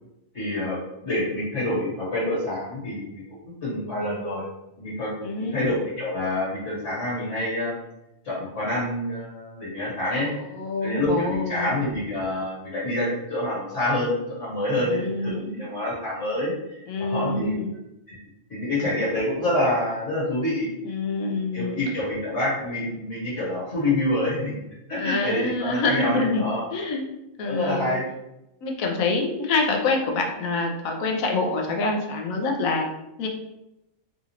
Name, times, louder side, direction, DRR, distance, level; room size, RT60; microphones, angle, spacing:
voice 1, 0.3-4.4 4.8-7.8 8.2-10.3 10.8-16.5 17.0-17.6 18.1-18.2 18.5-20.7 21.5-24.6 24.9-26.7 27.4-28.0, left 1 dB, 65° left, -6 dB, 1.8 m, -27 dB
voice 2, 5.2-5.6 10.1-11.7 14.8-15.6 16.9-17.7 20.8-21.8 25.0-27.0 27.4-28.0 28.6-32.9 33.2-33.3, left 3 dB, 85° left, 2 dB, 1.1 m, -26 dB
4.0 x 2.4 x 2.9 m, 0.89 s
omnidirectional pair, 1.4 m